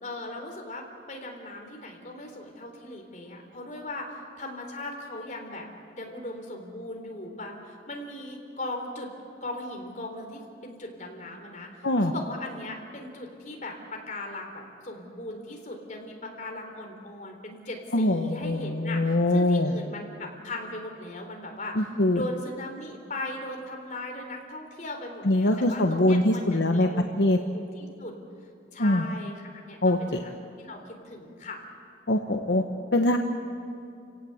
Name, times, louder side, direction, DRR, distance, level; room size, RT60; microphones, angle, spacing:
voice 1, 0.0-5.7 6.0-9.1 9.4-21.9 22.1-27.0 27.5-28.1 28.7-31.6, left 1 dB, 40° left, 2 dB, 3.8 m, -38 dB
voice 2, 17.9-19.7 21.8-22.2 25.2-26.9 27.2-27.4 28.8-29.0 29.8-30.2 32.1-32.6 32.9-33.2, left 1 dB, 75° left, 4 dB, 1.1 m, -23 dB
29.5 x 17.5 x 7.9 m, 2.5 s
head